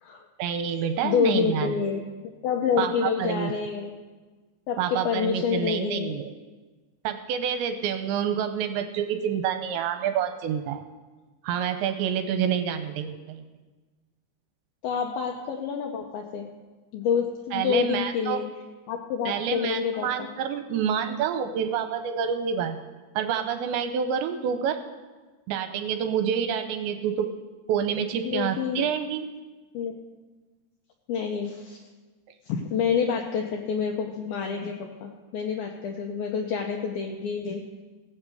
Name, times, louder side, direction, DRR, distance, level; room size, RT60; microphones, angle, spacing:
voice 1, 0.4-1.7 2.8-3.5 4.8-6.3 7.0-10.8 11.4-13.4 17.5-18.4 19.3-22.8 23.2-24.8 25.5-27.3 27.7-29.3, right 8 dB, 85° right, 8 dB, 2.8 m, -28 dB
voice 2, 1.0-2.0 2.4-3.9 4.7-6.1 14.8-16.5 16.9-18.4 18.9-20.3 28.2-28.9 29.7-29.9 31.1-31.8 32.5-37.6, left 6 dB, 85° left, 1 dB, 2.2 m, -28 dB
17.0 x 6.1 x 7.9 m, 1.3 s
omnidirectional pair, 5.3 m